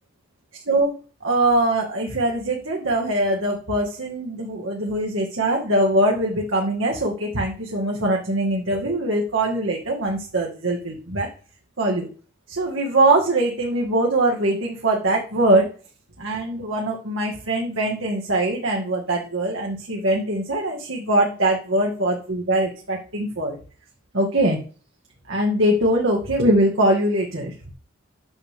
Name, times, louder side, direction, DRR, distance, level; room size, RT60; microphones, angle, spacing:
voice 1, 1.2-11.3 11.8-12.1 12.5-15.7 16.2-23.6 24.1-24.6 25.3-27.5, right 1 dB, 85° right, -1 dB, 1.7 m, -22 dB
9.3 x 3.5 x 6.6 m, 0.39 s
head